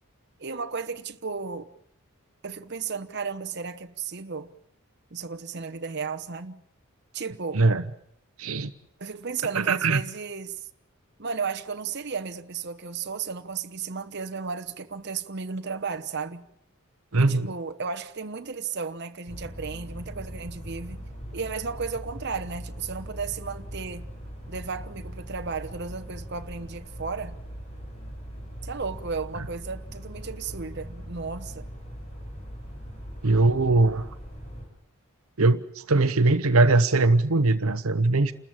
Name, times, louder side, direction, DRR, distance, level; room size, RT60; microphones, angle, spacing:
voice 1, 0.4-1.7 2.4-4.5 5.1-6.6 7.1-7.6 9.0-10.7 11.2-16.4 17.2-21.0 21.3-24.1 24.5-27.4 28.6-31.6, right 5 dB, 50° right, 1.0 m, -34 dB
voice 2, 8.4-8.7 9.5-10.0 17.1-17.5 33.2-34.1 35.4-38.3, right 3 dB, 75° right, 0.9 m, -21 dB
sound 1, 19.3-34.7, equal, 30° left, 6.4 m, -40 dB
29.0 x 14.0 x 8.7 m
head